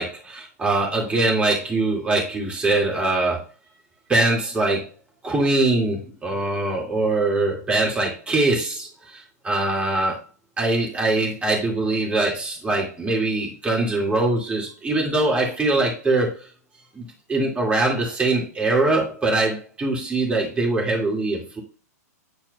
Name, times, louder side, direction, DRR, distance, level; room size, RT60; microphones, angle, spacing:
voice 1, 0.0-3.5 4.1-4.9 5.2-10.2 10.6-16.5 16.9-21.6, right 2 dB, 15° right, -2 dB, 2.2 m, -22 dB
9.7 x 4.3 x 2.3 m, 0.35 s
figure-of-eight pair, 105°, 9 cm